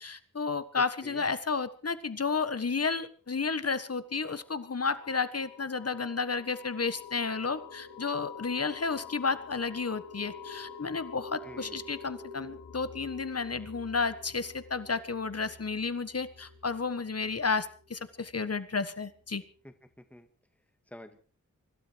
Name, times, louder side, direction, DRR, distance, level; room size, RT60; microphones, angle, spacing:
voice 1, 0.0-19.4, left 4 dB, 50° left, 13 dB, 1.5 m, -32 dB
sound 1, 3.8-18.2, left 5 dB, 80° left, 3.1 m, -48 dB
voice 2, 11.4-11.8 19.6-20.3 20.9-21.2, left 1 dB, 5° left, 6 dB, 2.1 m, -49 dB
24.5 x 12.5 x 4.7 m, 0.41 s
cardioid pair, 55°, 31 cm